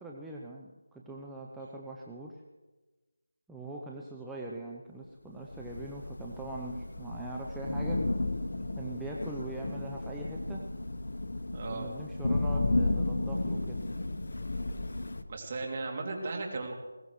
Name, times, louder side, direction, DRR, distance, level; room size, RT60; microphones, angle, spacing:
voice 1, 0.0-2.4 3.5-8.1 8.8-10.7 11.7-13.8, right 2 dB, 5° right, -3 dB, 0.7 m, -42 dB
Thunder / Rain, 5.5-15.2, left 2 dB, 70° left, 1.1 m, -33 dB
voice 2, 11.5-11.9 15.3-16.7, right 3 dB, 35° right, 1 dB, 2.7 m, -36 dB
20.5 x 17.5 x 3.2 m, 1.2 s
figure-of-eight pair, 170°, 0 cm